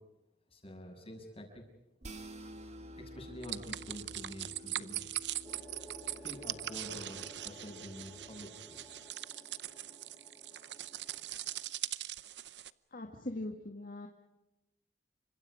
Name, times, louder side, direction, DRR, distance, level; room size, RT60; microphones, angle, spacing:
voice 1, 0.5-1.6 3.0-5.0 6.2-9.0, equal, 35° left, 2 dB, 6.7 m, -48 dB
sound 1, 2.0-8.5, equal, 40° right, 2.4 m, -51 dB
sound 2, 3.4-12.7, right 13 dB, 80° right, 0.7 m, -41 dB
sound 3, 5.4-11.7, left 1 dB, 15° left, 6.0 m, -55 dB
voice 2, 12.9-14.1, left 1 dB, 55° left, 3 dB, 1.9 m, -41 dB
29.0 x 25.5 x 5.0 m, 0.97 s
head